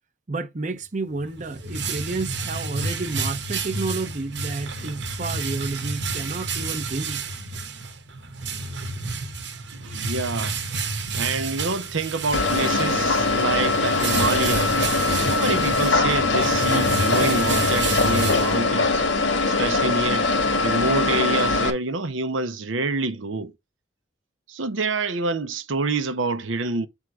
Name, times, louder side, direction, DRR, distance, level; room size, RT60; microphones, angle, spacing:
voice 1, 0.3-7.2 9.9-10.1, right 3 dB, 40° right, 0.7 m, -30 dB
sound 1, 1.1-19.0, right 3 dB, 65° right, 1.1 m, -30 dB
voice 2, 9.7-10.6 11.1-14.8 15.2-19.0 19.5-20.3 20.6-23.5 24.5-26.9, right 3 dB, 90° right, 0.8 m, -27 dB
sound 2, 12.3-21.7, left 3 dB, 75° left, 1.5 m, -22 dB
7.5 x 3.6 x 4.7 m
head